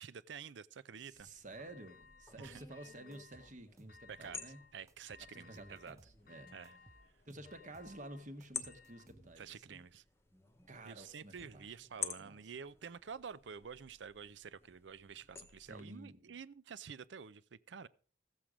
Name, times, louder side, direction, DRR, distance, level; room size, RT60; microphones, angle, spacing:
voice 1, 0.0-1.3 2.4-2.6 4.1-6.0 6.5-6.8 9.4-10.0 10.8-17.9, right 6 dB, 70° right, 0.5 m, -49 dB
voice 2, 1.0-4.6 5.3-6.5 7.2-9.8 10.7-12.4 15.6-16.4, right 1 dB, 40° right, 1.2 m, -52 dB
sound 1, 1.2-15.8, left 4 dB, 15° left, 0.9 m, -51 dB
sound 2, 1.5-2.4 2.7-3.6 3.9-4.7 5.1-9.1, left 5 dB, 50° left, 0.9 m, -62 dB
sound 3, 2.5-2.7 3.1-4.5 4.9-6.2 6.6-8.0 8.4-9.6, right 2 dB, 15° right, 0.4 m, -63 dB
14.5 x 7.6 x 4.9 m
head